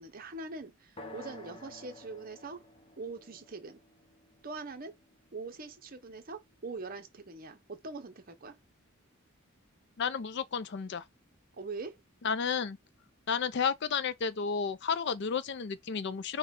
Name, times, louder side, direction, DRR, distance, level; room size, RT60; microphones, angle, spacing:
voice 1, 0.0-2.6 3.0-3.8 4.4-4.9 5.3-8.6 11.5-12.0, right 3 dB, 45° right, 0.8 m, -43 dB
sound 1, 1.0-4.9, left 2 dB, 25° left, 0.9 m, -51 dB
voice 2, 10.0-11.0 12.2-12.8 13.3-16.4, left 6 dB, 55° left, 0.5 m, -32 dB
5.5 x 2.3 x 3.7 m
head